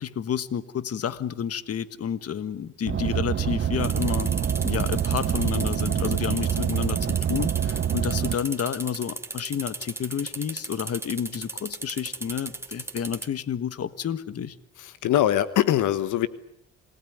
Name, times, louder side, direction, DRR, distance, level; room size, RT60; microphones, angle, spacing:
voice 1, 0.0-4.3 4.6-7.0 7.3-14.5, left 8 dB, 50° left, 14 dB, 1.4 m, -30 dB
Car, 2.9-8.3, right 9 dB, 40° right, 1.0 m, -26 dB
sound 1, 3.8-13.3, right 2 dB, 10° right, 2.7 m, -36 dB
voice 2, 14.8-16.3, left 12 dB, 80° left, 14 dB, 1.3 m, -22 dB
27.5 x 19.5 x 9.4 m, 0.77 s
cardioid pair, 90°, 30 cm